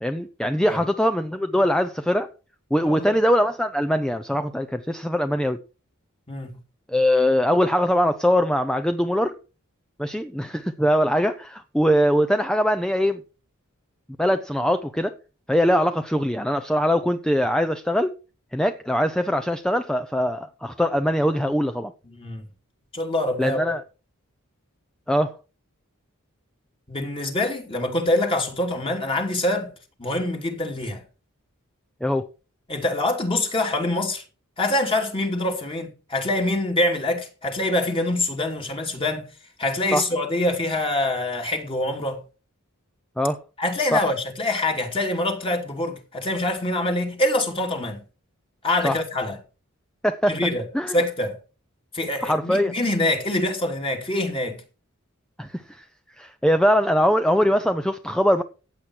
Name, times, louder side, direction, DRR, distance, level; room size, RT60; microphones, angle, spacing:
voice 1, 0.0-2.3 2.7-5.6 6.9-9.3 10.0-13.2 14.2-15.2 15.5-18.1 18.5-21.9 23.4-23.8 25.1-25.3 32.0-32.2 39.9-40.0 43.2-43.4 43.9-44.0 48.8-49.0 50.0-50.4 50.7-51.0 52.2-52.7 55.4-55.8 56.2-58.4, equal, 5° left, 0.7 m, -22 dB
voice 2, 2.8-3.2 6.3-6.6 22.1-22.5 22.9-23.7 26.9-29.7 30.0-31.0 32.7-34.2 34.6-39.3 39.6-42.2 43.6-48.0 48.6-49.4 50.3-50.6 50.9-51.4 51.9-54.6, left 1 dB, 25° left, 2.7 m, -25 dB
15.0 x 8.5 x 4.6 m
head